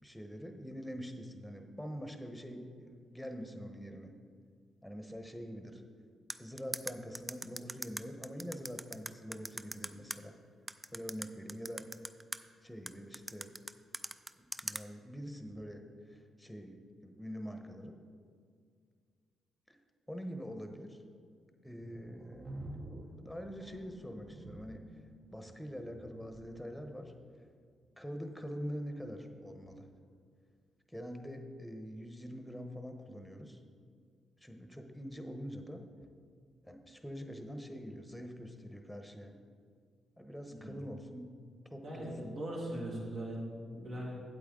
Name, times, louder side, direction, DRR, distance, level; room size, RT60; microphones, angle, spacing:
voice 1, 0.0-4.1 4.8-5.8 6.4-10.4 10.9-11.8 12.6-13.5 14.6-16.8 17.0-18.0 19.7-19.8 20.1-21.0 21.6-22.6 23.2-25.0 25.3-27.1 28.0-29.9 30.9-33.6 34.4-35.9 36.6-39.4 40.2-41.3 41.6-42.4, equal, ahead, 5 dB, 1.1 m, -44 dB
sound 1, 6.3-10.2 10.7-12.4 12.9-14.8, right 1 dB, 20° right, 0.4 m, -40 dB
sound 2, 21.8-27.1, right 1 dB, 35° right, 0.9 m, -50 dB
voice 2, 41.8-44.1, right 1 dB, 60° right, -3 dB, 2.2 m, -40 dB
8.3 x 8.1 x 3.8 m, 2.1 s
hypercardioid pair, 45°, 0 cm